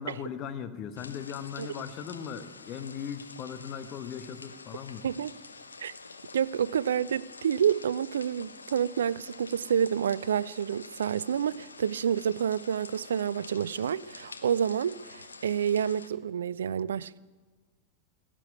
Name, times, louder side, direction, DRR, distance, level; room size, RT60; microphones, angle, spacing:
voice 1, 0.0-5.1, left 8 dB, 35° left, 1.1 m, -38 dB
sound 1, 0.9-16.1, left 4 dB, 75° left, 0.8 m, -48 dB
voice 2, 6.3-17.2, right 8 dB, 65° right, 0.4 m, -28 dB
17.0 x 7.6 x 9.8 m
figure-of-eight pair, 90°, 0 cm